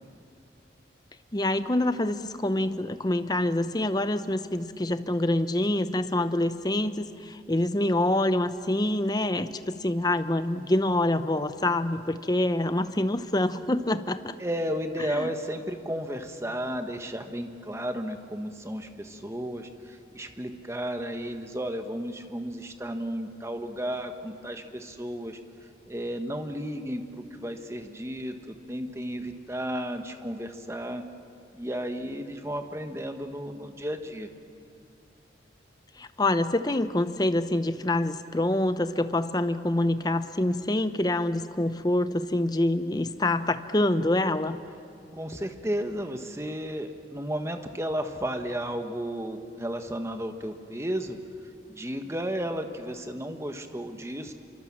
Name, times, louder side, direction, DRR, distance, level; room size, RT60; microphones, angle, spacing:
voice 1, 1.3-14.3 15.0-15.3 36.0-44.6, left 1 dB, 20° left, 11 dB, 0.7 m, -26 dB
voice 2, 14.4-25.4 25.9-31.0 31.5-34.3 45.1-51.2 51.7-54.3, equal, 15° right, 6 dB, 1.3 m, -33 dB
27.0 x 24.5 x 7.4 m, 2.4 s
head